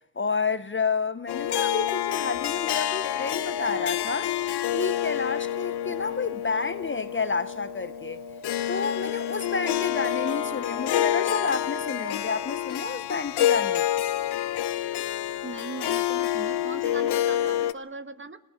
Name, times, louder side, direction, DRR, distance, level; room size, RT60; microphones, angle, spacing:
voice 1, 0.2-4.3 4.7-8.2 8.7-13.9, left 4 dB, 30° left, 0.9 m, -30 dB
Harp, 1.3-17.7, left 12 dB, 70° left, 0.9 m, -28 dB
sound 1, 2.6-12.6, right 1 dB, 55° right, 3.6 m, -45 dB
voice 2, 15.4-18.4, right 3 dB, 30° right, 1.5 m, -39 dB
27.5 x 17.5 x 5.7 m
supercardioid pair, 45°, 42 cm